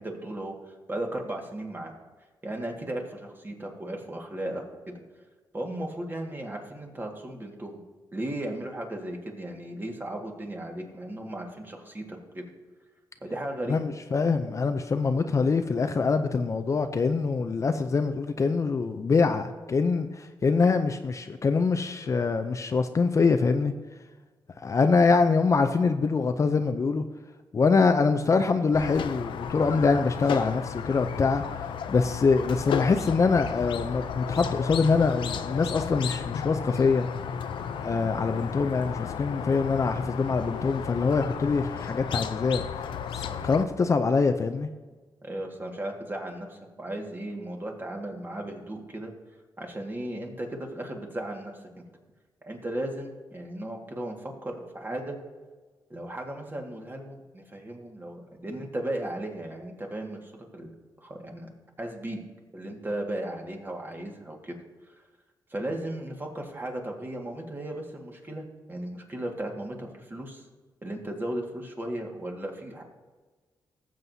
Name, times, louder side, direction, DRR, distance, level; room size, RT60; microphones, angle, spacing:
voice 1, 0.0-1.9 2.4-5.0 5.5-7.8 8.1-12.4 13.2-13.9 45.2-49.1 49.6-51.8 52.4-55.2 55.9-60.7 61.0-61.5 61.8-62.2 62.5-64.6 65.5-70.5 70.8-72.8, right 1 dB, 25° right, 1 dB, 1.7 m, -36 dB
voice 2, 13.7-23.7 24.6-27.0 27.5-31.4 31.9-37.1 37.8-42.6 43.2-44.7, left 4 dB, 40° left, 8 dB, 0.5 m, -24 dB
Squeak, 28.7-43.6, left 7 dB, 90° left, 0.5 m, -34 dB
18.0 x 7.6 x 2.7 m, 1.3 s
cardioid pair, 105°, 8 cm